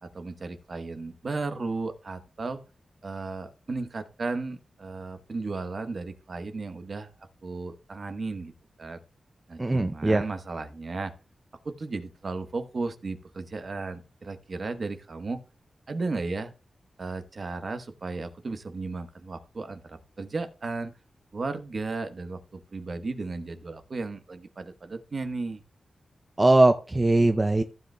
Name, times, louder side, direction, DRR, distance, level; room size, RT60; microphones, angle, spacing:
voice 1, 0.0-2.6 3.0-7.1 7.4-8.5 8.8-9.0 9.5-11.1 11.6-15.4 15.9-16.5 17.0-20.9 21.3-25.6, right 3 dB, 50° right, 8 dB, 1.1 m, -34 dB
voice 2, 9.6-10.2 26.4-27.6, right 2 dB, 20° right, 7 dB, 0.5 m, -20 dB
15.0 x 7.8 x 2.2 m, 0.34 s
wide cardioid pair, 115°, 0 cm